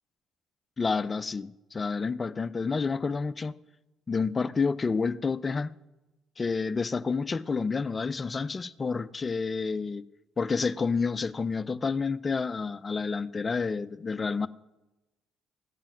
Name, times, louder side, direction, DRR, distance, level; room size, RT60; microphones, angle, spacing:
voice 1, 0.8-3.6 4.1-5.7 6.4-10.1 10.4-14.5, left 4 dB, 35° left, 0.5 m, -29 dB
16.0 x 5.5 x 5.9 m
hypercardioid pair, 55°, 0 cm